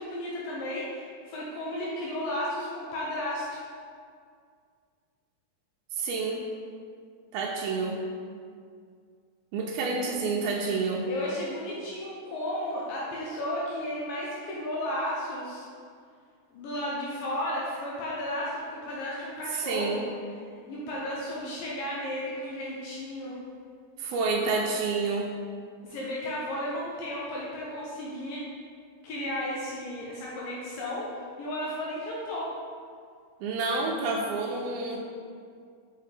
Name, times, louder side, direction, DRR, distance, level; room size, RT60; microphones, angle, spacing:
voice 1, 0.0-3.7 11.0-15.7 16.5-20.1 20.7-23.4 25.8-28.4 29.0-31.1 31.4-32.5, left 1 dB, 75° left, -5 dB, 2.4 m, -33 dB
voice 2, 6.0-6.4 7.3-8.0 9.5-11.0 19.6-20.0 24.0-25.3 33.4-35.0, right 4 dB, 85° right, -1 dB, 2.5 m, -29 dB
6.6 x 5.7 x 3.4 m, 2.1 s
omnidirectional pair, 4.3 m